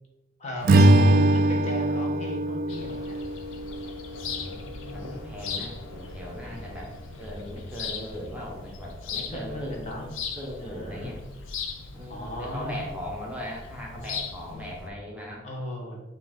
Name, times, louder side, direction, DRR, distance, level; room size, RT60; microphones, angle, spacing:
voice 1, 0.4-3.1 6.4-6.8 9.3-10.1 10.6-11.1 12.1-12.9 15.4-16.0, equal, 40° left, -1 dB, 1.0 m, -36 dB
Strum, 0.6-5.1, right 1 dB, 50° right, 0.4 m, -22 dB
sound 1, 2.7-14.9, left 5 dB, 80° left, 0.5 m, -39 dB
voice 2, 4.2-11.2 11.9-15.5, equal, 5° right, -3 dB, 0.8 m, -39 dB
5.6 x 2.6 x 3.5 m, 1.0 s
head